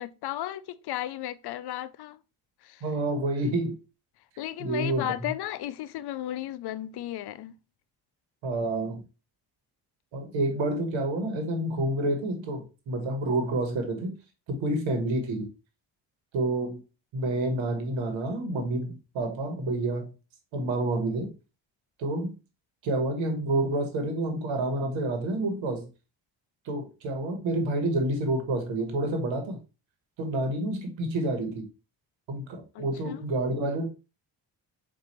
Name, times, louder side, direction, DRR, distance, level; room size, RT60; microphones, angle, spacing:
voice 1, 0.0-2.2 2.6-2.8 4.4-7.5 32.7-33.2, left 13 dB, 60° left, 0.5 m, -34 dB
voice 2, 2.8-3.8 4.6-5.1 8.4-9.0 10.1-14.1 14.5-15.5 16.3-16.8 17.1-20.1 20.5-21.3 22.0-22.3 22.8-25.9 26.6-29.6 30.2-31.7 32.3-33.9, right 2 dB, 85° right, 1.3 m, -28 dB
4.3 x 2.7 x 4.0 m
supercardioid pair, 55°, 46 cm